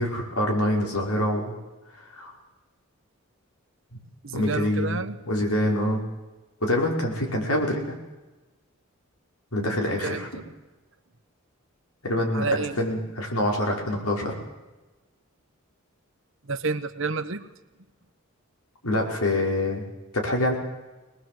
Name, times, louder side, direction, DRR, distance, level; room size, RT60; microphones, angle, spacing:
voice 1, 0.0-1.5 2.1-2.3 4.3-6.0 6.6-8.0 9.5-10.3 12.0-12.5 12.8-14.3 18.8-19.8 20.1-20.6, left 1 dB, 90° left, 0 dB, 5.7 m, -25 dB
voice 2, 4.2-5.2 10.0-10.4 12.3-12.8 16.4-17.5, right 4 dB, 60° right, 9 dB, 1.3 m, -29 dB
23.5 x 20.5 x 7.9 m, 1.1 s
head